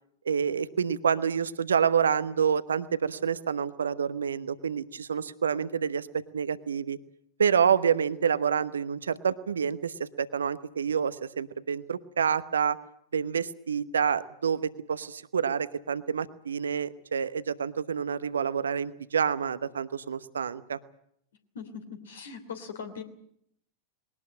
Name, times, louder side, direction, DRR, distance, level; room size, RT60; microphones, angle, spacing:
voice 1, 0.2-7.0 7.4-12.8 13.1-20.8, right 7 dB, 70° right, 14 dB, 1.0 m, -28 dB
voice 2, 21.5-23.0, left 6 dB, 65° left, 6 dB, 3.0 m, -40 dB
21.0 x 18.5 x 8.8 m, 0.71 s
figure-of-eight pair, 90°, 0 cm